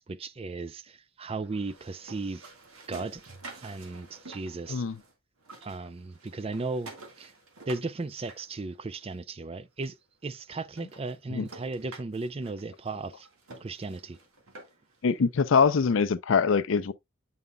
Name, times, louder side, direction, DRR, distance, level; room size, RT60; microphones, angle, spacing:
voice 1, 0.0-2.5 2.9-3.2 3.6-4.8 5.6-6.9 7.2-7.3 7.7-10.0 10.2-13.3 13.6-14.2, right 3 dB, 25° right, 0.4 m, -36 dB
sound 1, 1.4-5.1 5.4-9.1 9.8-9.9 10.3-10.4 10.7-15.0, right 3 dB, 80° right, 1.7 m, -49 dB
voice 2, 15.0-16.9, left 5 dB, 60° left, 0.5 m, -23 dB
7.9 x 5.4 x 2.3 m
head